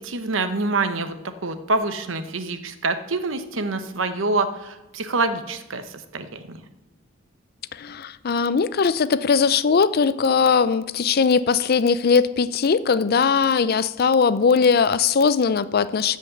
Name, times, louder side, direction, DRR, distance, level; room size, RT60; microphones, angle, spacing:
voice 1, 0.0-6.6, right 3 dB, 80° right, 1.0 m, -26 dB
voice 2, 7.7-16.2, left 5 dB, 50° left, 0.5 m, -20 dB
13.5 x 5.2 x 7.8 m
head